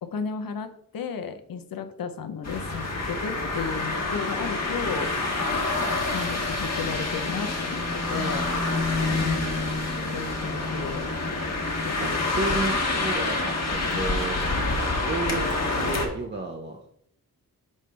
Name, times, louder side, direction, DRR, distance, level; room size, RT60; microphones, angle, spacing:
voice 1, 0.0-5.1 6.1-8.5 9.2-9.4 10.1-11.1 11.9-12.2, left 6 dB, 80° left, 8 dB, 0.7 m, -34 dB
sound 1, 2.4-16.1, left 2 dB, 50° left, 1.2 m, -27 dB
voice 2, 8.2-8.7 9.1-9.5 12.0-12.1 12.3-14.4 15.1-16.9, right 2 dB, 30° right, 2 dB, 0.6 m, -32 dB
6.4 x 5.2 x 3.3 m, 0.69 s
wide cardioid pair, 175°, 34 cm